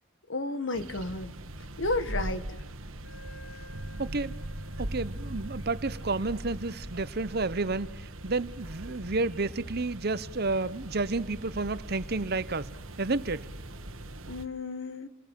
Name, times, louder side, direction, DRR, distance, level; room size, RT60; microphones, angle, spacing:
voice 1, 0.3-1.3 1.8-2.5 14.3-15.1, left 2 dB, 70° left, 1.7 m, -32 dB
sound 1, 0.7-14.5, right 1 dB, 85° right, 1.6 m, -41 dB
Wind instrument woodwind instrument, 3.0-10.4, left 1 dB, 50° left, 5.9 m, -57 dB
sound 2, 3.7-7.9, right 1 dB, 70° right, 1.3 m, -45 dB
voice 2, 4.0-4.4 4.8-12.7 13.0-13.5, right 3 dB, 50° right, 0.9 m, -31 dB
28.0 x 21.0 x 7.5 m
head